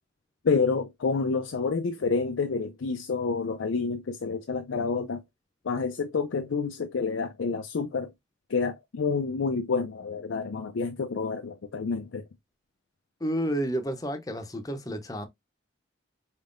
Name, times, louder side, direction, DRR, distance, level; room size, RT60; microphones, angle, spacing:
voice 1, 0.4-5.2 5.6-8.1 8.5-12.2, left 4 dB, 80° left, 0.5 m, -28 dB
voice 2, 13.2-15.3, equal, 20° left, 0.6 m, -30 dB
4.6 x 3.6 x 2.5 m
head